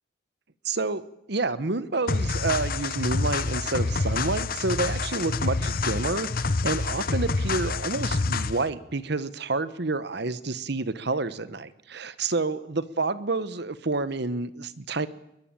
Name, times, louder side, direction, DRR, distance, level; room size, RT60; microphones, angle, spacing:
voice 1, 0.6-1.0 1.3-15.1, right 3 dB, 55° right, 15 dB, 1.0 m, -29 dB
sound 1, 2.1-8.7, left 3 dB, 45° left, 0.9 m, -27 dB
21.5 x 21.5 x 9.0 m, 0.85 s
head